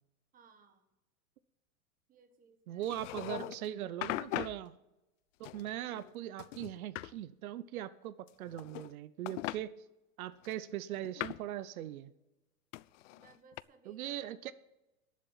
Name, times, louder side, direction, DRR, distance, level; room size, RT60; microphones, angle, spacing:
voice 1, 0.3-0.8 2.1-2.9 13.1-14.5, right 5 dB, 20° right, 7 dB, 1.5 m, -63 dB
voice 2, 2.7-4.7 5.4-9.7 10.2-12.1 13.9-14.5, right 12 dB, 80° right, 15 dB, 0.8 m, -40 dB
sound 1, 2.8-3.7 4.0-4.6 5.4-6.1 6.4-7.1 8.3-8.9 9.3-9.6 10.4-11.5 12.7-13.6, left 18 dB, 60° left, 0.5 m, -40 dB
11.0 x 7.5 x 9.2 m, 0.97 s
supercardioid pair, 145°, 42 cm